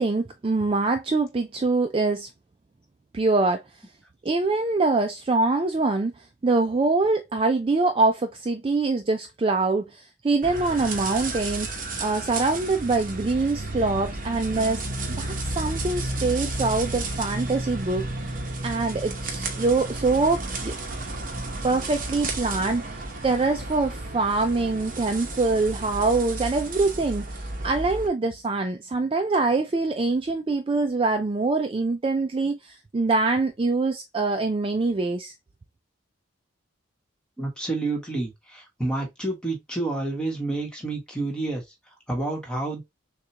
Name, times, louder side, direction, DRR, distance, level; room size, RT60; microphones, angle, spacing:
voice 1, 0.0-2.3 3.1-3.6 4.2-11.7 12.0-14.8 15.2-18.1 18.6-20.8 21.6-35.3, right 3 dB, 25° right, 0.3 m, -24 dB
sound 1, 10.4-28.1, right 2 dB, 45° right, 0.9 m, -32 dB
voice 2, 37.4-41.6 42.1-42.8, right 2 dB, 5° left, 1.3 m, -29 dB
6.5 x 2.3 x 2.8 m
head